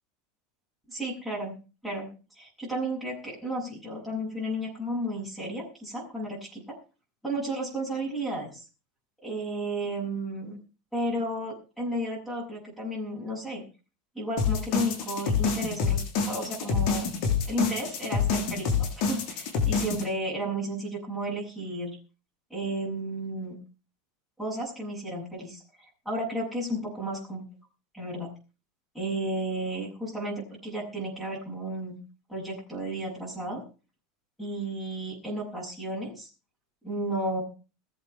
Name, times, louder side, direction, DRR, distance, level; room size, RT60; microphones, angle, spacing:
voice 1, 0.9-1.5 1.8-2.1 2.4-6.7 7.2-8.6 9.2-10.6 10.9-13.6 14.2-17.1 17.4-22.0 22.5-23.5 24.4-27.4 27.9-28.3 28.9-32.0 32.3-33.6 34.4-36.3 36.8-37.4, right 1 dB, 5° left, -5 dB, 7.1 m, -33 dB
sound 1, 14.4-20.0, left 5 dB, 50° left, 7.0 m, -27 dB
21.5 x 8.2 x 5.7 m, 0.35 s
supercardioid pair, 155°, 0 cm